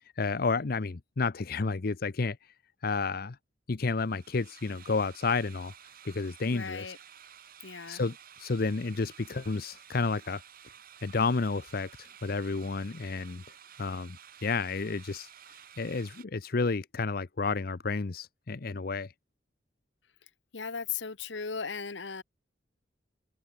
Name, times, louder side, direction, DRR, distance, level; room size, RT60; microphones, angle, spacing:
voice 1, 0.2-2.4 2.8-3.4 3.7-5.7 6.0-6.9 7.9-10.4 11.0-13.4 13.8-14.2 14.4-15.3 15.8-19.1, left 4 dB, 55° left, 0.7 m, -31 dB
sound 1, 3.9-16.3, right 9 dB, 50° right, 2.3 m, -53 dB
voice 2, 6.5-7.0 7.6-8.0 20.5-22.2, left 6 dB, 90° left, 1.3 m, -37 dB
head